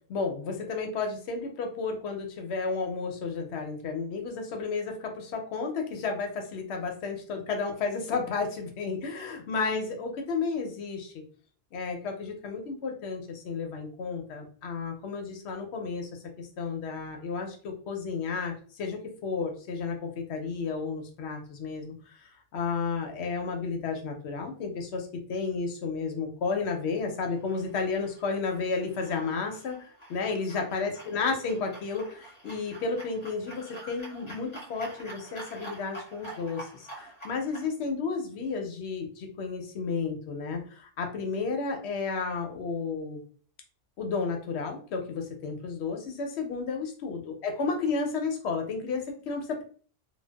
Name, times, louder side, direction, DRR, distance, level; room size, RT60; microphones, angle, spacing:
voice 1, 0.1-11.2 11.7-16.1 16.4-43.2 44.0-49.6, left 4 dB, 70° left, 3 dB, 0.8 m, -32 dB
sound 1, 27.2-37.7, right 2 dB, 30° left, 0.6 m, -47 dB
2.5 x 2.2 x 2.2 m, 0.43 s
omnidirectional pair, 1.2 m